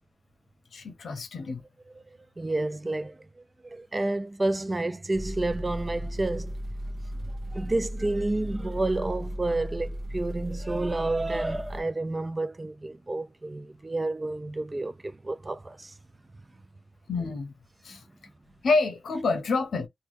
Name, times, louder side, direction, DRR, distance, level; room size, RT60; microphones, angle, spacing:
voice 1, 0.7-1.6 17.1-17.5 17.8-18.0 18.6-19.9, left 3 dB, 70° left, 0.8 m, -27 dB
voice 2, 2.4-3.2 3.6-6.6 7.2-15.9 17.9-18.0, right 2 dB, 20° right, 0.3 m, -30 dB
sound 1, 5.1-11.8, equal, 40° right, 0.8 m, -36 dB
2.9 x 2.2 x 3.4 m
wide cardioid pair, 175°, 0 cm